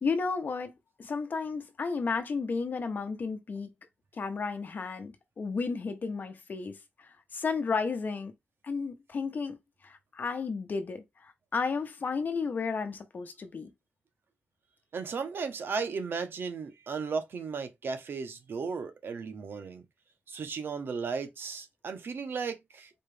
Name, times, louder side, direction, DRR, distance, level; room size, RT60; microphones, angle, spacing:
voice 1, 0.0-3.7 4.1-8.3 8.6-9.6 9.8-13.7, left 4 dB, 55° left, 0.9 m, -33 dB
voice 2, 14.9-19.8 20.3-22.9, right 5 dB, 80° right, 0.9 m, -35 dB
4.4 x 3.2 x 3.4 m
wide cardioid pair, 140°, 4 cm